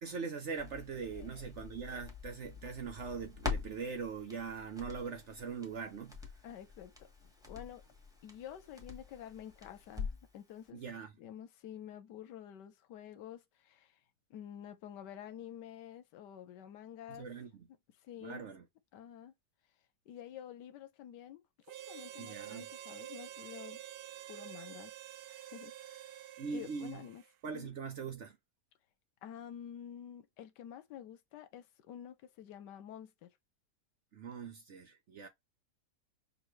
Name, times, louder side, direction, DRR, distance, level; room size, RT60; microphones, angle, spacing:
voice 1, 0.0-6.2 10.7-11.1 17.1-17.7 18.2-18.6 22.2-22.7 26.4-27.0 27.4-28.4 34.1-35.3, right 5 dB, 55° right, 0.8 m, -42 dB
Crackle, 0.6-10.4 10.7-10.8, left 4 dB, 5° right, 1.0 m, -45 dB
voice 2, 1.1-1.4 6.4-6.9 7.2-7.8 8.2-10.8 11.2-14.0 14.3-17.3 18.0-18.5 18.9-19.3 20.1-21.4 21.9-23.8 24.3-24.9 25.3-27.2 27.5-27.8 29.2-33.3, left 10 dB, 90° left, 1.3 m, -49 dB
Harmonica, 21.7-27.3, right 12 dB, 85° right, 1.2 m, -48 dB
6.1 x 2.6 x 3.1 m
omnidirectional pair, 1.8 m